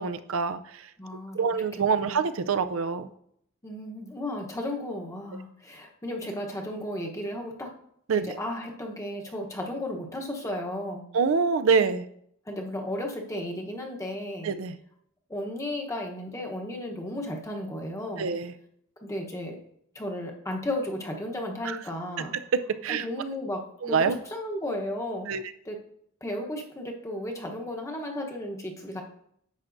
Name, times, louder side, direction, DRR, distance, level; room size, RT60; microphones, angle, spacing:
voice 1, 0.0-0.8 1.3-3.1 8.1-8.4 11.1-12.1 14.4-14.8 18.2-18.5 21.6-21.8 22.3-23.1 23.8-24.2 25.3-25.4, right 5 dB, 70° right, 12 dB, 0.5 m, -26 dB
voice 2, 1.0-1.6 2.0-2.2 3.6-7.7 8.1-11.0 12.5-14.5 15.3-18.4 19.0-19.6 19.9-22.3 22.9-25.4 25.6-25.8 26.2-29.0, left 1 dB, 15° left, 1 dB, 0.9 m, -34 dB
10.5 x 7.3 x 2.6 m, 0.70 s
head